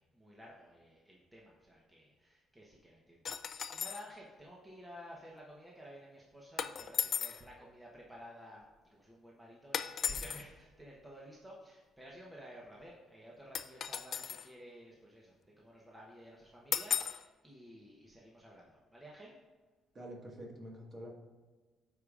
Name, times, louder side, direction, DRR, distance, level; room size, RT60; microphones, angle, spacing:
voice 1, 0.0-19.3, equal, 10° right, -3 dB, 1.0 m, -53 dB
sound 1, 3.2-4.1 6.6-7.4 9.7-10.4 13.5-14.5 16.7-17.2, left 8 dB, 50° left, 0.3 m, -36 dB
voice 2, 19.9-21.1, equal, 35° right, -2 dB, 1.6 m, -47 dB
13.5 x 4.8 x 2.5 m, 1.3 s
cardioid pair, 125°, 0 cm